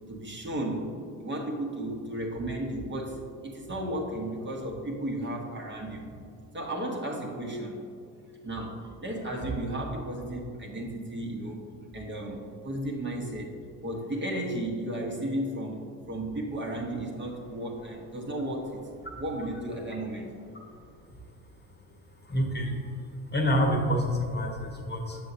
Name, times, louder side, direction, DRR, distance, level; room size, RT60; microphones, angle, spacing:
voice 1, 0.1-6.1 6.5-7.8 8.4-20.3, right 1 dB, 25° right, -2 dB, 1.2 m, -34 dB
voice 2, 22.3-22.7 23.3-25.2, equal, 25° left, 0 dB, 1.3 m, -27 dB
6.8 x 6.5 x 2.7 m, 2.5 s
hypercardioid pair, 65°, 44 cm